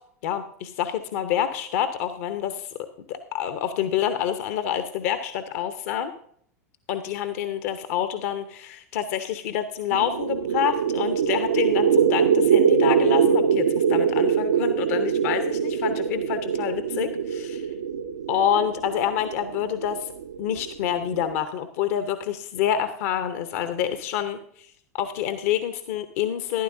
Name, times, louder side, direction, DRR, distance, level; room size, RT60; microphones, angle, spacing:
voice 1, 0.2-2.7 3.1-6.1 6.9-17.7 18.3-20.1 20.4-24.7 25.0-26.6, left 9 dB, 60° left, 10 dB, 0.8 m, -27 dB
sound 1, 9.9-21.4, right 7 dB, 75° right, 0.7 m, -23 dB
13.5 x 11.5 x 2.6 m, 0.66 s
figure-of-eight pair, 90°, 9 cm